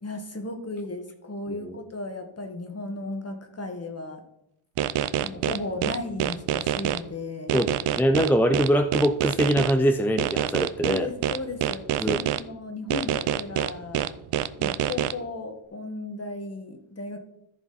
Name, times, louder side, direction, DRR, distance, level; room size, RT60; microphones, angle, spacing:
voice 1, 0.0-4.2 5.1-7.5 10.8-14.1 14.6-17.2, left 2 dB, 30° left, 5 dB, 1.5 m, -35 dB
sound 1, 4.8-7.0 7.5-9.7 10.2-12.4 12.9-15.1, right 11 dB, 90° right, 0.6 m, -26 dB
voice 2, 8.0-11.1 12.0-12.2, equal, 5° left, 8 dB, 0.4 m, -23 dB
14.0 x 4.8 x 4.1 m, 0.80 s
wide cardioid pair, 125°, 50 cm